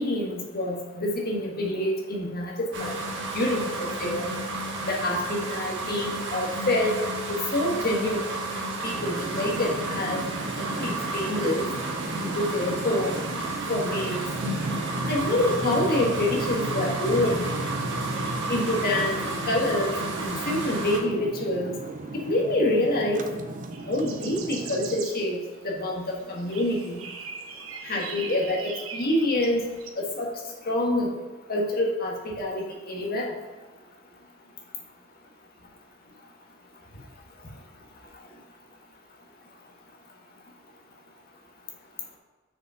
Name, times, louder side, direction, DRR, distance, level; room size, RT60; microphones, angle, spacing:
voice 1, 0.0-3.0 3.3-4.3 4.9-7.0 7.3-8.3 8.8-10.2 10.6-11.6 12.2-13.2 13.7-14.2 15.1-17.5 18.5-19.2 19.5-21.7 22.1-23.2 23.8-25.4 25.6-27.0 27.8-29.6 29.9-30.3 30.6-31.1 31.5-33.3, left 1 dB, 45° left, -1 dB, 1.5 m, -27 dB
sound 1, 2.7-21.0, right 2 dB, 60° right, 1.5 m, -32 dB
sound 2, 8.9-25.0, right 2 dB, 40° right, 0.6 m, -35 dB
sound 3, 23.7-29.9, right 5 dB, 80° right, 1.0 m, -41 dB
6.3 x 5.3 x 5.6 m, 1.3 s
head